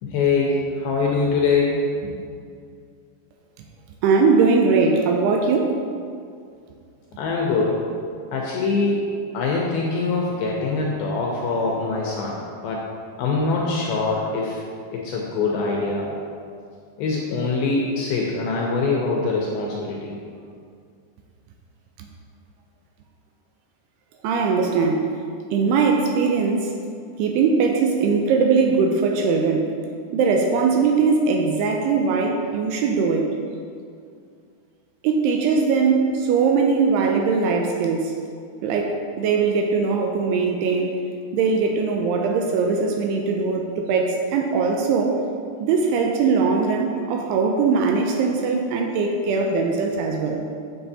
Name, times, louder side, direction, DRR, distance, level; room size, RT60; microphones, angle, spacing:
voice 1, 0.0-2.1 7.2-7.9 8.3-12.9 13.2-14.6 14.9-16.2 17.0-20.2, left 3 dB, 80° left, -2 dB, 2.2 m, -23 dB
voice 2, 4.0-5.8 22.0-22.1 24.2-25.1 25.5-26.7 27.2-29.7 30.1-33.3 35.0-38.2 38.6-41.0 41.3-45.2 45.6-50.4, right 4 dB, 85° right, 2 dB, 2.4 m, -20 dB
7.3 x 6.9 x 2.7 m, 2.3 s
omnidirectional pair, 4.9 m